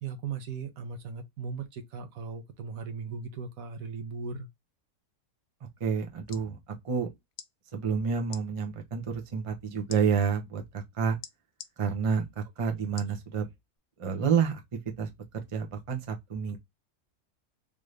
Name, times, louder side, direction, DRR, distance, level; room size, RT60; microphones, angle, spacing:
voice 1, 0.0-4.5 12.7-12.8, right 5 dB, 65° right, 1.1 m, -38 dB
voice 2, 5.8-7.1 7.7-11.2 11.8-13.5 14.0-14.6 15.0-15.1 15.5-16.6, right 6 dB, 35° right, 0.5 m, -29 dB
sound 1, 6.3-6.5 7.3-7.5 8.3-8.4 9.9-10.0 11.2-11.7 13.0-13.2 13.8-13.9, left 10 dB, 80° left, 1.1 m, -44 dB
3.5 x 2.6 x 3.1 m
omnidirectional pair, 1.6 m